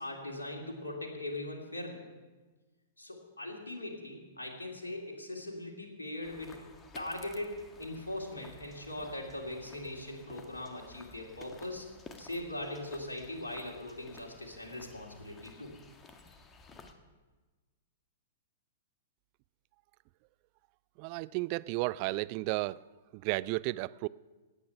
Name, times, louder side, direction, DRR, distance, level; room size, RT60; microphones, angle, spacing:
voice 1, 0.0-2.0 3.0-6.6 6.9-11.9 12.2-15.7, left 1 dB, 85° left, 1 dB, 2.5 m, -40 dB
sound 1, 6.2-16.9, left 3 dB, 20° left, 1.4 m, -54 dB
voice 2, 21.0-22.8 23.1-24.1, right 21 dB, 40° right, 19 dB, 0.3 m, -33 dB
18.0 x 8.5 x 5.8 m, 1.3 s
figure-of-eight pair, 105°, 0 cm